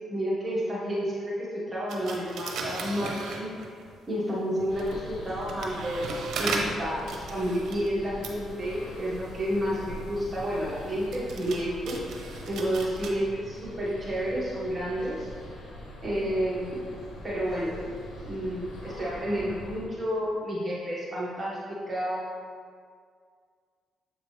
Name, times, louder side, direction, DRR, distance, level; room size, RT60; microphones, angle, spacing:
voice 1, 0.1-3.5 4.1-6.0 6.4-12.0 12.5-15.3 16.0-16.8 17.2-17.8 18.2-22.2, equal, 25° right, -6 dB, 1.6 m, -30 dB
sound 1, 1.9-4.0 4.6-13.1, right 3 dB, 70° right, 0.8 m, -37 dB
sound 2, 4.7-19.8, left 1 dB, 75° left, 1.5 m, -43 dB
7.4 x 5.0 x 3.3 m, 2.1 s
cardioid pair, 90°, 0 cm